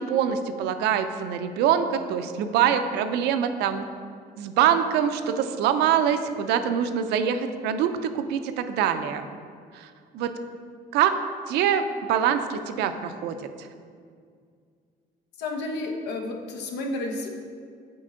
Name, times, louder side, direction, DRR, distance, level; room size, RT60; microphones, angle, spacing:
voice 1, 0.0-3.9 4.4-9.3 9.7-9.9 10.1-10.4 10.9-11.2 11.5-13.4, right 8 dB, 85° right, 9 dB, 0.5 m, -24 dB
voice 2, 15.4-17.3, left 2 dB, 85° left, 2 dB, 0.9 m, -31 dB
7.7 x 4.4 x 3.8 m, 2.2 s
cardioid pair, 110°, 17 cm